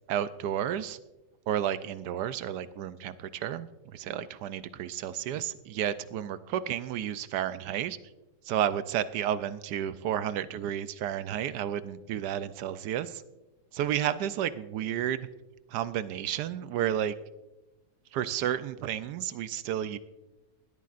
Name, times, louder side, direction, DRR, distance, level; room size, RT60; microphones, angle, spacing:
voice 1, 0.1-1.0 1.5-8.0 8.4-13.2 13.7-15.2 15.7-17.1 18.1-20.0, right 10 dB, 75° right, 13 dB, 1.1 m, -31 dB
19.5 x 13.0 x 2.5 m, 1.0 s
omnidirectional pair, 1.9 m